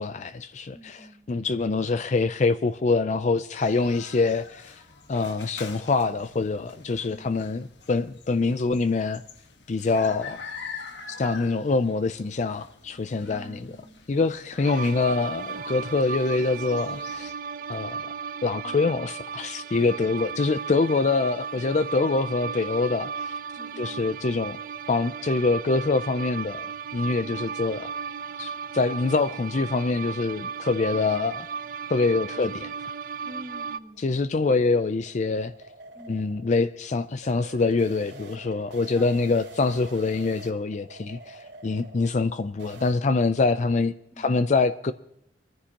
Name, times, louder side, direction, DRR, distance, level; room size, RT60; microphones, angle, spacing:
voice 1, 0.0-4.8 5.1-9.2 9.7-10.4 11.2-13.7 14.1-17.3 17.7-18.0 18.4-23.4 23.8-24.6 24.9-26.7 26.9-27.9 28.4-31.5 31.9-32.7 34.0-35.5 36.1-44.9, left 3 dB, 40° left, 0.4 m, -25 dB
voice 2, 0.7-1.3 7.1-7.4 13.2-14.0 18.6-19.0 23.6-24.0 27.2-27.6 32.4-32.5 33.2-34.3 35.9-36.2 38.9-39.4 44.1-44.4, equal, 5° right, 1.9 m, -46 dB
sound 1, 3.5-17.3, left 5 dB, 85° left, 1.5 m, -45 dB
sound 2, 14.6-33.8, right 6 dB, 55° right, 0.6 m, -35 dB
sound 3, 34.0-42.9, right 2 dB, 80° right, 3.0 m, -46 dB
23.0 x 14.5 x 2.9 m
head